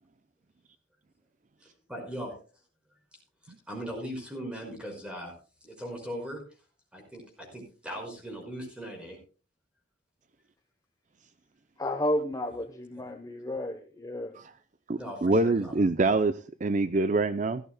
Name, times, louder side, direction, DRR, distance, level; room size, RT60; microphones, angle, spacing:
voice 1, 1.9-2.4 3.7-5.3 5.6-6.4 6.9-9.2 12.9-13.0 15.0-15.7, equal, 5° right, 5.5 m, -39 dB
voice 2, 11.8-14.4, left 1 dB, 20° left, 1.0 m, -32 dB
voice 3, 14.9-17.6, right 2 dB, 45° right, 0.6 m, -25 dB
17.0 x 14.0 x 2.2 m
head